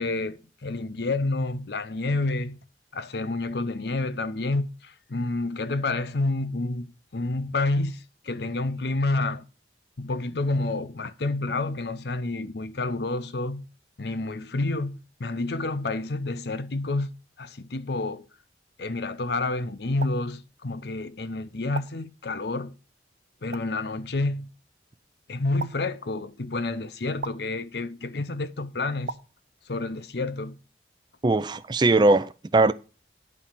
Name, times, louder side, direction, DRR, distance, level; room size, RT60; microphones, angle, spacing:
voice 1, 0.0-2.6 2.9-9.4 10.0-13.7 14.0-17.1 17.4-18.3 18.8-22.8 23.4-24.5 25.3-29.1 29.7-30.6, left 2 dB, 65° left, 0.7 m, -29 dB
sound 1, 20.0-20.1 21.7-21.9 23.5-23.6 25.6-25.7 27.2-27.4 29.1-29.2, right 4 dB, 75° right, 0.6 m, -34 dB
voice 2, 31.2-32.7, right 2 dB, 25° right, 0.4 m, -20 dB
10.5 x 4.2 x 7.3 m
head